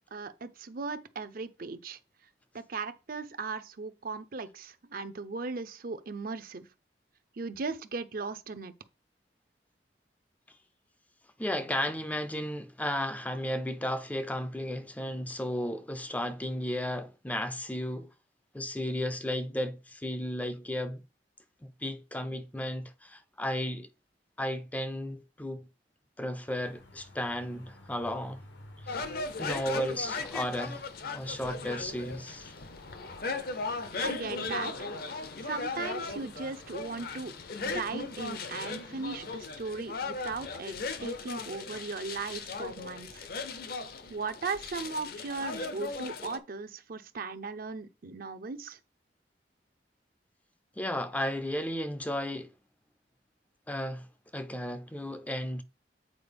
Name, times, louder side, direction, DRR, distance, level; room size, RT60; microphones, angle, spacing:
voice 1, 0.1-2.0 2.5-6.7 7.4-8.7 34.0-34.9 35.4-37.4 37.6-43.3 44.1-48.8, right 4 dB, 55° right, 0.6 m, -37 dB
voice 2, 11.4-18.1 18.5-21.0 21.6-23.9 24.4-25.7 26.2-28.4 28.8-29.1 29.4-30.8 31.1-32.5 50.8-52.5 53.7-54.1 54.3-55.6, left 1 dB, 10° left, 0.4 m, -34 dB
sound 1, 26.5-39.4, left 2 dB, 85° left, 1.2 m, -52 dB
sound 2, 28.9-46.4, left 4 dB, 55° left, 0.7 m, -37 dB
8.2 x 4.4 x 3.5 m
head